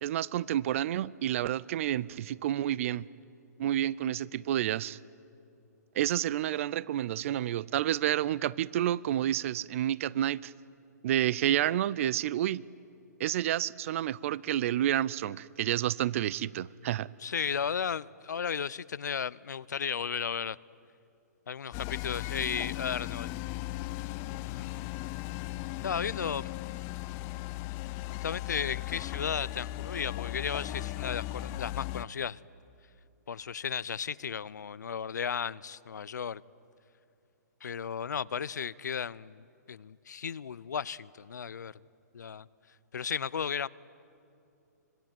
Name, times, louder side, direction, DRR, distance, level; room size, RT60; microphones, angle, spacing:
voice 1, 0.0-3.0 3.6-5.0 6.0-10.5 11.0-12.6 13.2-17.1, right 12 dB, 50° right, 23 dB, 0.5 m, -29 dB
voice 2, 17.2-20.6 21.5-23.4 24.2-24.7 25.8-26.5 28.2-32.4 33.3-36.4 37.6-41.7 42.1-42.5 42.9-43.7, left 7 dB, 80° left, 20 dB, 0.6 m, -34 dB
sound 1, 21.7-32.0, left 16 dB, 30° left, 0.6 m, -37 dB
25.5 x 21.5 x 9.1 m, 2.6 s
hypercardioid pair, 140°, 9 cm